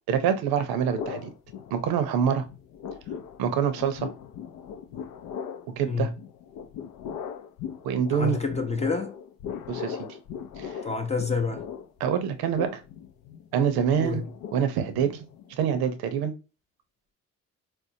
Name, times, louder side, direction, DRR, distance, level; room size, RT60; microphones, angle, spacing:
voice 1, 0.1-1.3 1.7-2.4 3.4-4.1 5.8-6.1 7.8-8.4 9.7-10.0 10.6-10.8 12.0-12.8 13.5-14.2 14.5-15.2 15.6-16.3, right 8 dB, 70° right, 0.7 m, -25 dB
sound 1, 1.0-2.2 2.5-15.6, left 7 dB, 60° left, 0.5 m, -39 dB
voice 2, 8.1-9.2 10.8-11.7 14.0-14.3, left 4 dB, 15° left, 0.6 m, -28 dB
4.4 x 2.1 x 2.6 m
supercardioid pair, 65°, 38 cm